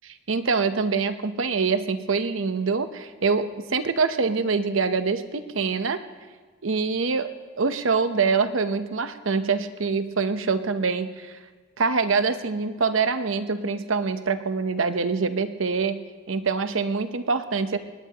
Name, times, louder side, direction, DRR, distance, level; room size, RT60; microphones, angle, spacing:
voice 1, 0.3-6.0 6.6-7.3 7.6-11.4 11.8-16.0 16.3-17.8, right 4 dB, 90° right, 10 dB, 0.8 m, -25 dB
20.5 x 18.5 x 2.9 m, 1.4 s
head